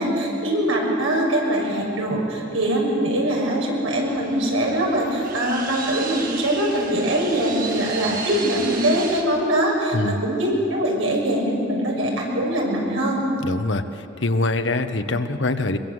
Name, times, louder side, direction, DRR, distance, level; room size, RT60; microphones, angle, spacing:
voice 1, 0.0-13.2, right 1 dB, 90° right, -1 dB, 6.6 m, -22 dB
sound 1, 4.1-9.2, right 4 dB, 45° right, 2.5 m, -33 dB
voice 2, 13.4-15.8, left 2 dB, 70° left, 9 dB, 1.2 m, -24 dB
23.0 x 23.0 x 8.0 m, 2.8 s
head